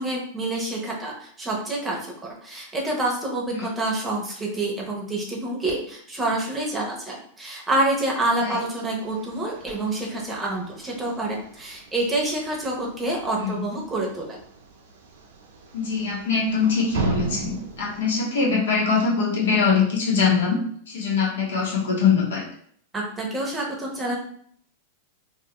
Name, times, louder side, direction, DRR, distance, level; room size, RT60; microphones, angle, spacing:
voice 1, 0.0-14.4 22.9-24.2, right 2 dB, 10° right, -2 dB, 0.7 m, -27 dB
sound 1, 9.0-18.0, right 3 dB, 75° right, 0.6 m, -36 dB
voice 2, 15.7-20.6 20.9-22.4, left 5 dB, 85° left, -4 dB, 1.1 m, -22 dB
2.7 x 2.4 x 2.9 m, 0.63 s
supercardioid pair, 140°, 0 cm